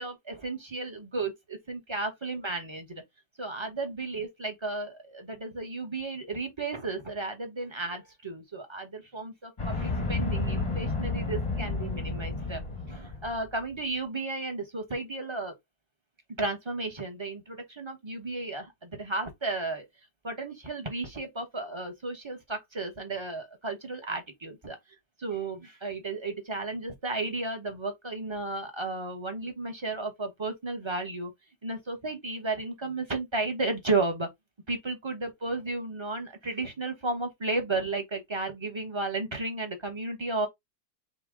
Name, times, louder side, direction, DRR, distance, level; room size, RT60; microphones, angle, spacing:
voice 1, 0.0-3.0 3.4-12.6 12.9-15.5 16.4-19.9 20.2-24.8 25.2-31.3 31.6-34.3 34.7-40.5, right 3 dB, 25° right, 0.6 m, -33 dB
sound 1, 9.6-13.5, left 3 dB, 25° left, 0.7 m, -31 dB
5.4 x 2.1 x 3.5 m
omnidirectional pair, 1.8 m